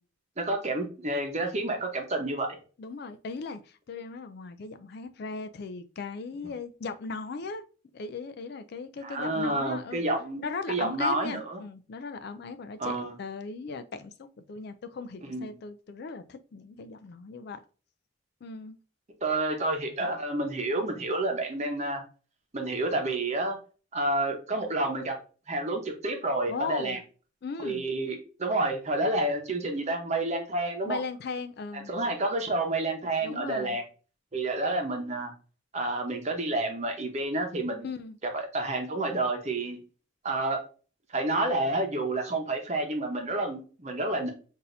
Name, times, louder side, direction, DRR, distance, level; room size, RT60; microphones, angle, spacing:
voice 1, 0.4-2.6 9.0-11.6 12.8-13.1 15.3-15.5 19.2-22.0 22.5-23.6 23.9-25.1 25.5-27.0 27.6-31.0 31.9-33.8 34.3-35.3 35.7-37.9 38.3-39.8 40.2-40.6 41.1-44.3, right 2 dB, 35° right, 0.9 m, -29 dB
voice 2, 2.8-7.6 7.9-10.0 10.4-17.6 18.4-18.8 26.5-27.0 27.4-27.9 30.9-31.9 33.2-33.8 37.8-38.2, left 4 dB, 50° left, 0.4 m, -38 dB
5.9 x 2.7 x 2.6 m
head